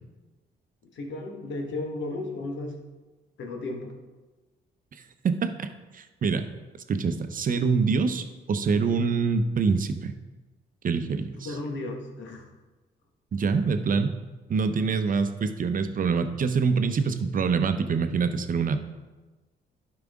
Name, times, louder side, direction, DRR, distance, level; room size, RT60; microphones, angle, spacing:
voice 1, 0.9-2.8 3.4-4.0 11.1-12.5, left 2 dB, 70° left, 2 dB, 1.5 m, -34 dB
voice 2, 5.2-5.7 5.9-6.4 6.9-10.1 10.8-11.6 13.3-14.1 14.5-18.8, right 5 dB, 45° right, 9 dB, 0.7 m, -25 dB
11.5 x 4.9 x 3.6 m, 1.2 s
cardioid pair, 90°, 20 cm